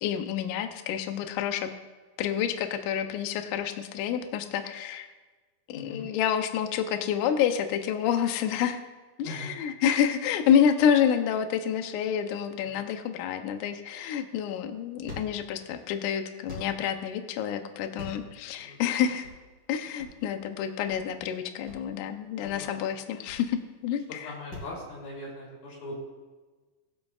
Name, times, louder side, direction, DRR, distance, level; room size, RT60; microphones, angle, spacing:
voice 1, 0.0-1.7 2.2-5.1 5.7-8.8 9.2-19.3 19.7-24.3, left 8 dB, 90° left, 7 dB, 1.7 m, -28 dB
voice 2, 5.7-6.1 9.2-9.5 12.6-12.8 18.6-18.8 22.4-22.7 24.1-25.9, left 2 dB, 55° left, -4 dB, 4.5 m, -41 dB
sound 1, 14.0-24.8, left 2 dB, 25° left, 4.5 m, -46 dB
21.5 x 7.9 x 2.4 m, 1.3 s
omnidirectional pair, 4.6 m